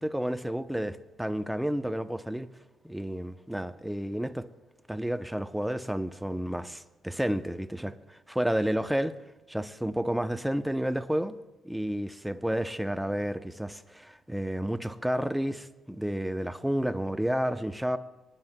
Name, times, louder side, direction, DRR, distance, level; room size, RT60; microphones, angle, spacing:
voice 1, 0.0-2.5 2.8-4.5 4.9-9.2 9.5-11.4 11.6-18.0, equal, 5° right, 0.6 m, -31 dB
26.0 x 9.6 x 2.2 m
cardioid pair, 90°, 0 cm